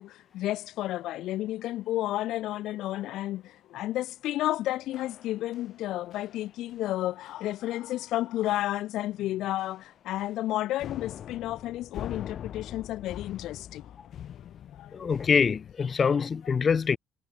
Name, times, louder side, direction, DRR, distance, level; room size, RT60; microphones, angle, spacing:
voice 1, 0.0-13.9 14.8-15.1, left 15 dB, 90° left, 0.7 m, -32 dB
sound 1, 4.9-5.8 6.1-6.4 6.7-6.9 7.3-7.5 7.8-7.9 8.4-8.7 9.0-9.2 9.6-10.5 10.8-15.7, left 10 dB, 65° left, 6.6 m, -43 dB
voice 2, 14.9-17.0, left 6 dB, 45° left, 0.8 m, -24 dB
cardioid pair, 90°, 0 cm